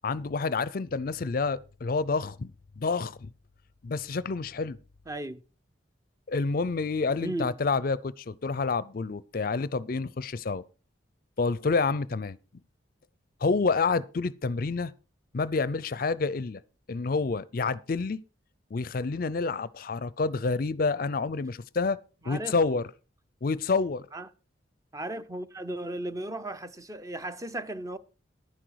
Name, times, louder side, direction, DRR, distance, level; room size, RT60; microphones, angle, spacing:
voice 1, 0.0-3.3 3.8-4.8 6.3-10.6 11.4-12.4 13.4-14.9 15.3-16.6 16.9-18.2 18.7-22.0 22.3-22.8 23.4-24.1, left 4 dB, 50° left, 0.5 m, -28 dB
voice 2, 5.1-5.4 7.2-7.5 22.2-22.8 24.1-24.3 24.9-28.0, right 1 dB, 15° right, 0.6 m, -36 dB
11.5 x 10.0 x 4.7 m
head